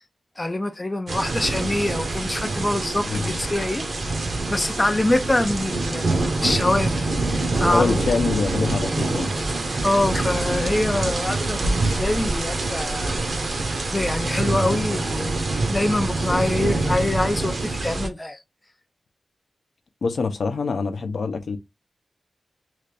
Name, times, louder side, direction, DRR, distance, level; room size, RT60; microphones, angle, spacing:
voice 1, 0.4-3.8 4.5-6.1 6.4-8.0 9.8-13.2 13.9-15.4 15.7-18.4, left 1 dB, 15° left, 0.4 m, -24 dB
sound 1, 1.1-18.1, right 2 dB, 50° right, 0.7 m, -25 dB
voice 2, 3.1-3.4 7.7-9.3 20.0-21.6, left 4 dB, 65° left, 0.6 m, -25 dB
3.1 x 2.5 x 3.3 m
wide cardioid pair, 150°, 0 cm